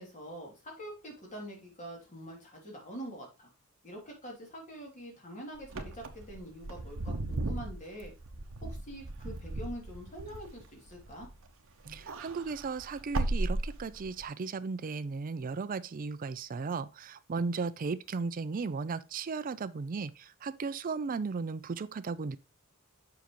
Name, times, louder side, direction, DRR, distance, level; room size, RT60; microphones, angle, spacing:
voice 1, 0.0-3.5 3.8-8.1 8.6-11.3, equal, 35° left, 2.6 m, -45 dB
Wind / Car, 5.6-11.5 11.8-14.2, right 2 dB, 65° right, 0.8 m, -36 dB
voice 2, 11.9-20.1 20.4-22.4, right 4 dB, 40° right, 0.4 m, -35 dB
7.2 x 5.7 x 3.0 m
head